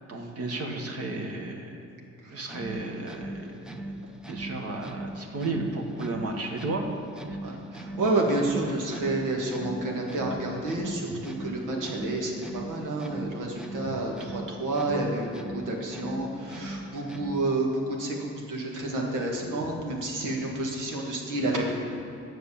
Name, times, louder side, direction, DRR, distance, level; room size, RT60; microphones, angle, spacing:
voice 1, 0.1-1.8 2.3-3.9 4.3-6.9 7.4-7.5 13.8-13.9, right 2 dB, 50° right, 2 dB, 1.6 m, -33 dB
sound 1, 2.4-17.6, right 1 dB, ahead, 0.7 m, -40 dB
voice 2, 7.4-18.2 18.5-21.7, right 2 dB, 85° right, 0 dB, 2.0 m, -29 dB
9.5 x 6.4 x 7.2 m, 2.7 s
cardioid pair, 90°, 30 cm